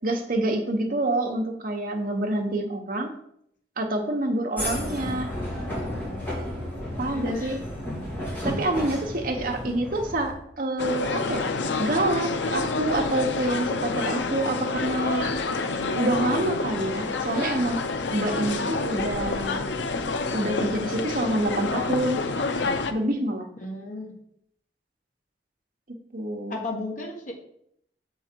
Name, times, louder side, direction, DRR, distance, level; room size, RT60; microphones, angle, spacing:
voice 1, 0.0-3.1 3.8-5.3 7.0-7.6 8.4-11.4 11.8-15.3 15.9-17.8 18.1-19.7 20.3-22.2 22.9-23.5 26.1-26.6, right 1 dB, 50° right, 3 dB, 1.0 m, -27 dB
sound 1, 4.6-10.3, left 1 dB, 10° left, 2.3 m, -32 dB
voice 2, 7.1-7.6 9.4-9.9 23.6-24.1 26.5-27.3, left 2 dB, 45° left, 0 dB, 1.5 m, -35 dB
sound 2, 10.8-22.9, left 3 dB, 85° left, 0.6 m, -28 dB
7.1 x 4.7 x 4.5 m, 0.72 s
head